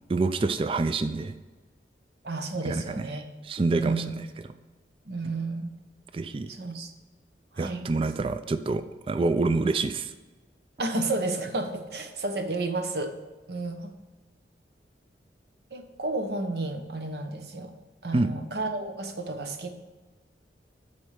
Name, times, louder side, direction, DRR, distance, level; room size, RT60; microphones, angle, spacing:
voice 1, 0.1-1.3 2.6-3.0 3.5-4.0 6.1-6.5 7.6-10.1 18.1-18.3, right 3 dB, 30° right, 11 dB, 0.3 m, -26 dB
voice 2, 2.2-3.3 3.7-4.2 5.1-5.7 6.5-6.9 7.5-7.8 10.8-13.1 13.5-13.9 15.7-17.7 18.0-19.7, right 2 dB, 65° right, 6 dB, 1.0 m, -31 dB
8.0 x 4.3 x 6.5 m, 1.2 s
head